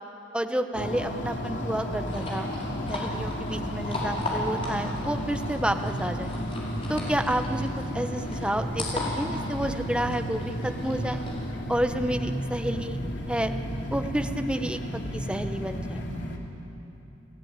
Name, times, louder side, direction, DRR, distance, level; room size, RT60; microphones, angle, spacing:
voice 1, 0.3-2.5 2.9-6.3 6.9-7.7 7.9-8.9 9.2-11.2 11.7-13.0 13.3-13.5 13.9-14.8 15.1-16.0, right 1 dB, 5° right, 6 dB, 0.9 m, -30 dB
sound 1, 0.7-16.4, equal, 80° left, 2.7 m, -33 dB
sound 2, 2.0-11.5, left 2 dB, 30° left, 5.1 m, -37 dB
30.0 x 16.0 x 8.9 m, 2.9 s
head